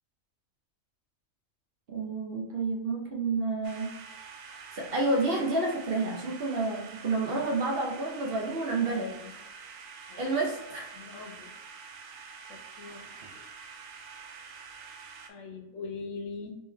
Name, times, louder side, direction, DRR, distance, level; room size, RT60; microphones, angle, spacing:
voice 1, 1.9-3.9 4.5-9.4 10.2-10.9 12.8-13.3, right 3 dB, 50° right, -2 dB, 0.8 m, -30 dB
sound 1, 3.6-15.3, right 5 dB, 80° right, 1.0 m, -47 dB
voice 2, 8.9-9.3 10.1-10.3 10.9-11.5 12.5-13.0 15.3-16.6, left 4 dB, 70° left, 4 dB, 1.0 m, -41 dB
3.5 x 3.2 x 3.4 m, 1.0 s
omnidirectional pair, 1.4 m